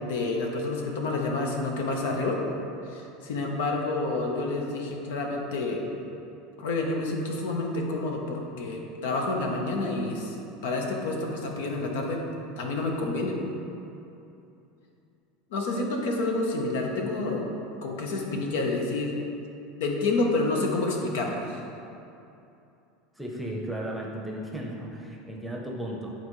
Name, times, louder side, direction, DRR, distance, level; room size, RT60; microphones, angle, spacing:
voice 1, 0.0-2.4 2.9-5.8 6.6-12.2 12.6-13.4 15.5-17.5 17.8-19.1 19.8-21.6, left 2 dB, 80° left, 1 dB, 1.0 m, -29 dB
voice 2, 23.2-26.1, right 1 dB, 5° right, -2 dB, 0.8 m, -35 dB
10.5 x 4.2 x 3.2 m, 2.8 s
supercardioid pair, 140°, 0 cm